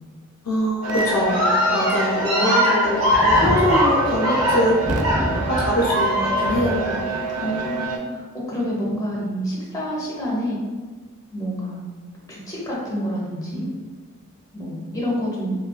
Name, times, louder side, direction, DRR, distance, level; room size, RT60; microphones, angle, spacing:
voice 1, 0.4-4.8 5.4-6.9, left 1 dB, 70° left, -3 dB, 0.5 m, -23 dB
sound 1, 0.8-8.0, right 4 dB, 80° right, 0.4 m, -28 dB
sound 2, 0.9-7.0, equal, 45° right, 1.4 m, -21 dB
voice 2, 7.4-10.6 11.3-11.9 12.3-13.7 14.5-15.6, equal, 15° left, -5 dB, 0.8 m, -28 dB
3.2 x 2.5 x 2.2 m, 1.4 s
head